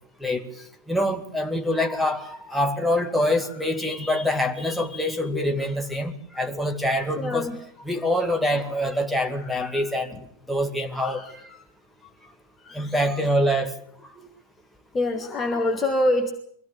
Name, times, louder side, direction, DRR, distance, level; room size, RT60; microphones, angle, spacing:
voice 1, 0.9-7.5 7.8-10.2 10.5-11.2 12.7-13.8, left 1 dB, ahead, 3 dB, 2.2 m, -25 dB
voice 2, 1.8-2.8 5.3-5.5 6.5-6.6 7.2-7.6 9.4-10.2 11.0-11.3 12.0-12.1 12.6-12.9 14.2-14.3 14.9-16.3, left 1 dB, 20° left, 3 dB, 1.8 m, -28 dB
23.0 x 16.0 x 8.5 m, 0.66 s
figure-of-eight pair, 90°, 0 cm